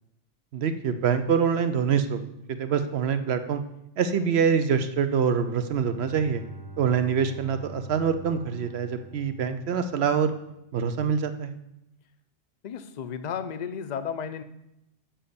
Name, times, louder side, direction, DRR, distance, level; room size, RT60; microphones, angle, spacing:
voice 1, 0.5-2.2 2.5-3.6 4.0-6.4 6.8-10.3 10.7-11.6, right 7 dB, 65° right, 9 dB, 0.9 m, -25 dB
Bowed string instrument, 5.4-10.4, right 2 dB, 30° right, 1.3 m, -45 dB
voice 2, 12.6-14.4, left 7 dB, 50° left, 10 dB, 0.6 m, -34 dB
7.4 x 5.1 x 6.9 m, 0.85 s
omnidirectional pair, 1.2 m